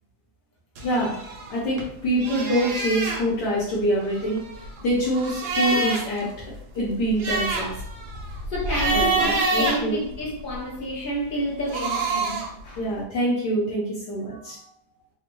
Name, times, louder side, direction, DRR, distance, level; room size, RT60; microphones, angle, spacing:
voice 1, 0.8-1.2 1.5-7.7 8.9-10.0 12.8-14.6, right 1 dB, 70° left, 1.3 m, -25 dB
sound 1, 0.8-1.9 2.2-3.2 4.0-6.2 6.6-6.7 7.0-10.6 11.5-12.6, right 3 dB, 70° right, 1.1 m, -27 dB
voice 2, 8.5-12.8 14.4-14.5, equal, 45° left, 0.7 m, -29 dB
3.4 x 2.1 x 3.0 m
omnidirectional pair, 2.0 m